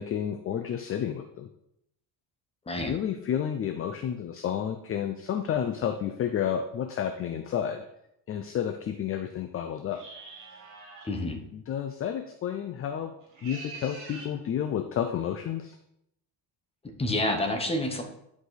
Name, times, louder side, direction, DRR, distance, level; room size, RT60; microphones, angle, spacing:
voice 1, 0.0-1.5 2.8-7.8 8.3-10.0 11.7-13.1 13.4-15.8, left 9 dB, 35° left, 7 dB, 0.4 m, -31 dB
sound 1, 9.9-11.2 13.2-14.4, right 3 dB, 45° right, 2.8 m, -44 dB
voice 2, 11.0-11.4 17.0-18.0, left 1 dB, 15° left, 3 dB, 0.9 m, -28 dB
10.0 x 4.9 x 4.1 m, 0.79 s
cardioid pair, 165°, 43 cm